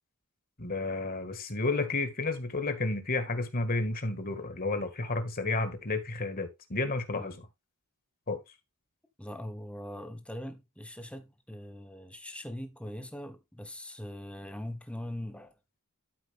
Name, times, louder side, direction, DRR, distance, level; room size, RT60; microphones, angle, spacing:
voice 1, 0.6-7.3 8.3-8.4, left 3 dB, 40° left, 1.8 m, -31 dB
voice 2, 9.2-15.6, left 1 dB, 5° left, 1.3 m, -41 dB
12.0 x 5.0 x 3.5 m
head